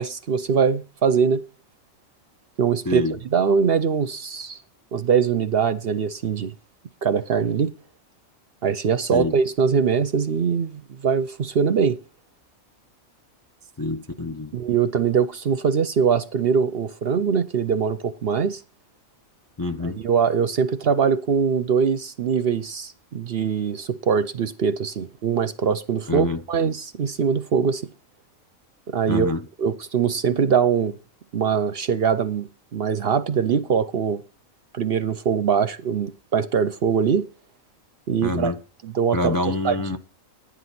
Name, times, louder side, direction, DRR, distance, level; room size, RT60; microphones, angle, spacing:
voice 1, 0.0-1.4 2.6-3.0 3.3-4.6 4.9-6.5 7.0-7.7 8.6-12.0 14.5-18.6 19.8-27.8 28.9-29.3 29.6-30.9 31.3-34.2 34.7-37.3 38.1-38.5 38.8-39.4 39.6-40.0, right 6 dB, 55° right, 0.8 m, -22 dB
voice 2, 2.9-3.2 9.1-9.4 13.8-14.5 19.6-20.0 26.1-26.4 29.1-29.4 38.2-38.6 39.1-40.0, left 2 dB, 25° left, 0.5 m, -26 dB
11.5 x 9.6 x 4.3 m
omnidirectional pair, 1.4 m